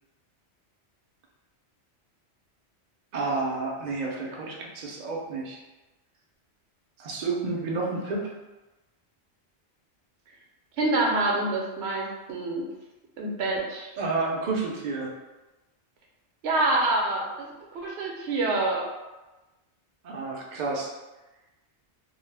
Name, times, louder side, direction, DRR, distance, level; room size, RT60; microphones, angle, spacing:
voice 1, 3.1-5.6 7.0-8.3 14.0-15.1 20.0-20.9, right 3 dB, 55° right, -2 dB, 0.5 m, -30 dB
voice 2, 10.8-12.6 13.2-13.9 16.4-17.5 17.7-18.8, right 2 dB, 75° right, -1 dB, 0.8 m, -26 dB
2.3 x 2.0 x 3.2 m, 1.1 s
omnidirectional pair, 1.1 m